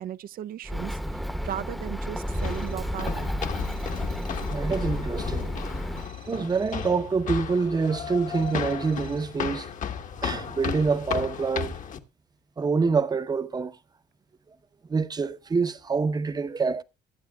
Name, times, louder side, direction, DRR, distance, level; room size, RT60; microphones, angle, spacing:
voice 1, 0.0-3.3, right 11 dB, 60° right, 0.6 m, -36 dB
Bird, 0.6-6.1, equal, ahead, 0.9 m, -32 dB
sound 1, 2.2-12.0, left 7 dB, 50° left, 1.3 m, -34 dB
sound 2, 2.3-3.0 3.6-4.7 6.0-7.1 8.3-9.5, right 10 dB, 85° right, 4.2 m, -56 dB
voice 2, 4.5-5.5 6.3-9.7 10.2-11.7 12.6-13.7 14.9-16.8, right 4 dB, 25° right, 0.8 m, -26 dB
23.0 x 8.1 x 2.3 m
cardioid pair, 110°, 17 cm